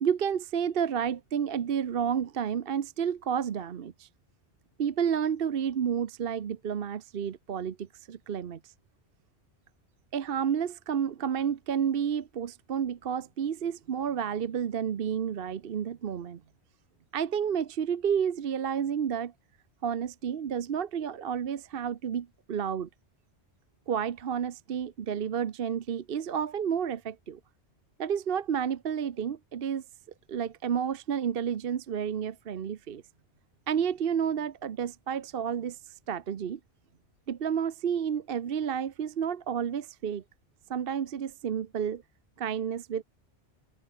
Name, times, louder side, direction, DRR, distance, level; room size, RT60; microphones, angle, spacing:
voice 1, 0.0-4.1 4.8-8.6 10.1-16.4 17.1-19.3 19.8-22.9 23.9-27.4 28.0-29.8 30.3-33.0 33.7-35.8 36.1-36.6 37.3-40.2 40.7-42.0 42.4-43.0, right 8 dB, 60° right, 1.0 m, -30 dB
omnidirectional pair, 1.1 m